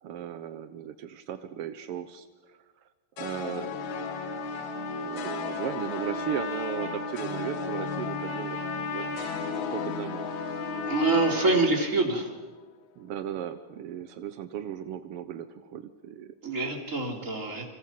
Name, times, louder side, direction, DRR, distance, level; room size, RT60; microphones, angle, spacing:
voice 1, 0.0-2.6 3.2-3.7 4.5-4.6 5.0-8.6 8.9-9.2 9.7-10.3 11.1-11.6 13.0-16.3 17.5-17.6, right 9 dB, 75° right, 10 dB, 1.3 m, -37 dB
sound 1, 3.2-12.5, left 8 dB, 65° left, 2.6 m, -37 dB
Trumpet, 3.7-11.7, left 1 dB, 35° left, 4.1 m, -36 dB
voice 2, 10.9-12.3 16.4-17.6, right 2 dB, 25° right, 1 dB, 3.7 m, -25 dB
28.5 x 26.5 x 5.9 m, 1.3 s
omnidirectional pair, 3.8 m